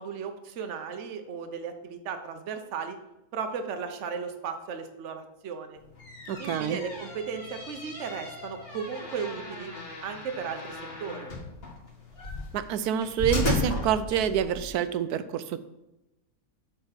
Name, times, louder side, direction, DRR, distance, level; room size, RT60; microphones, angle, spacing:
voice 1, 0.0-3.0 3.3-5.8 6.4-9.7 10.0-11.3, right 6 dB, 55° right, 6 dB, 1.1 m, -35 dB
sound 1, 5.8-14.7, left 2 dB, 40° left, 2.2 m, -35 dB
voice 2, 6.3-6.8 12.5-15.6, right 9 dB, 90° right, 12 dB, 1.1 m, -27 dB
7.3 x 4.5 x 5.7 m, 0.93 s
omnidirectional pair, 1.6 m